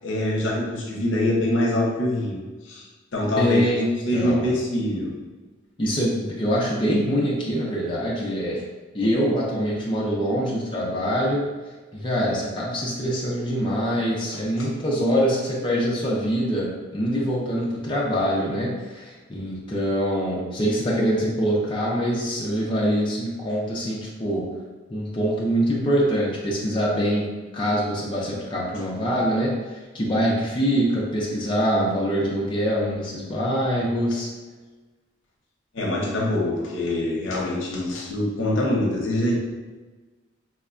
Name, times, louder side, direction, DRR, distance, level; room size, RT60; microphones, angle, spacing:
voice 1, 0.0-2.9 3.1-3.6 4.0-5.1 14.6-14.7 35.7-39.4, left 1 dB, 70° left, -2 dB, 0.7 m, -24 dB
voice 2, 3.4-3.9 4.1-4.6 5.8-8.6 8.9-11.5 11.9-24.5 24.9-34.3, equal, 25° left, -5 dB, 0.4 m, -24 dB
4.2 x 2.1 x 2.4 m, 1.3 s
head